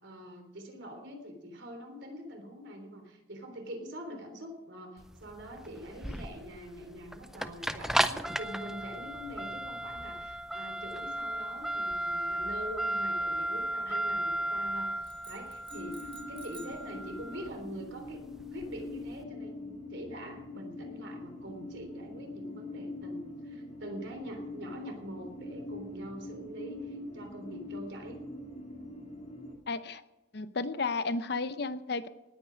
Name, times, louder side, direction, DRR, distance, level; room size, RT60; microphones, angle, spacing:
voice 1, 0.0-14.9 15.3-18.2 18.5-28.2, equal, 65° right, 4 dB, 3.5 m, -44 dB
sound 1, 5.0-19.1, right 1 dB, ahead, 0.5 m, -35 dB
sound 2, 15.0-16.9, right 4 dB, 25° right, 1.6 m, -51 dB
sound 3, 15.7-29.6, left 2 dB, 35° left, 2.3 m, -43 dB
voice 2, 29.7-30.0 30.3-32.1, left 3 dB, 55° left, 12 dB, 0.7 m, -33 dB
19.0 x 9.1 x 6.3 m, 1.0 s
head